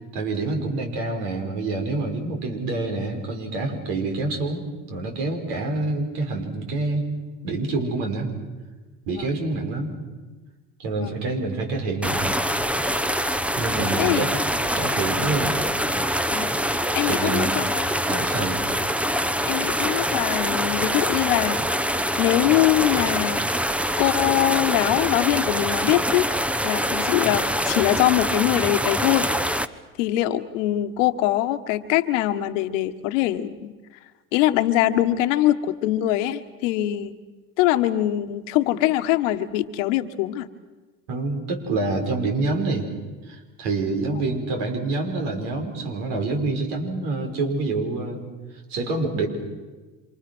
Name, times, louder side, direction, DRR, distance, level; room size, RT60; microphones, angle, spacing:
voice 1, 0.1-7.1 7.4-8.3 9.1-10.0 10.8-12.4 13.6-14.4 14.7-15.6 17.0-17.7 18.1-18.6 41.1-42.9 43.3-48.2 48.7-49.3, right 3 dB, 70° right, 3 dB, 5.9 m, -27 dB
sound 1, 12.0-29.7, equal, 5° right, 1.0 m, -24 dB
voice 2, 16.9-17.8 19.5-21.6 22.2-23.5 24.0-26.3 26.6-29.3 30.0-33.7 34.3-37.1 37.6-40.5 44.1-44.2, left 14 dB, 75° left, 10 dB, 1.6 m, -23 dB
27.5 x 26.5 x 6.3 m, 1.3 s
hypercardioid pair, 80°, 38 cm